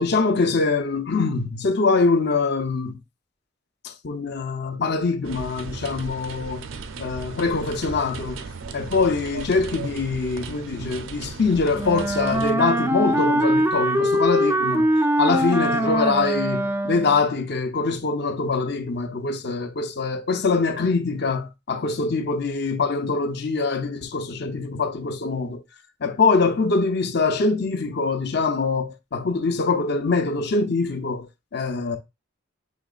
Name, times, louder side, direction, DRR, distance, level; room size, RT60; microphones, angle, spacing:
voice 1, 0.0-3.0 3.8-6.7 7.0-8.4 8.7-14.9 15.2-25.6 26.0-32.0, left 4 dB, 55° left, 0.7 m, -23 dB
sound 1, 5.2-12.5, right 4 dB, 80° right, 0.5 m, -36 dB
Wind instrument woodwind instrument, 11.8-17.2, right 1 dB, 10° right, 0.3 m, -22 dB
7.3 x 3.0 x 2.4 m
head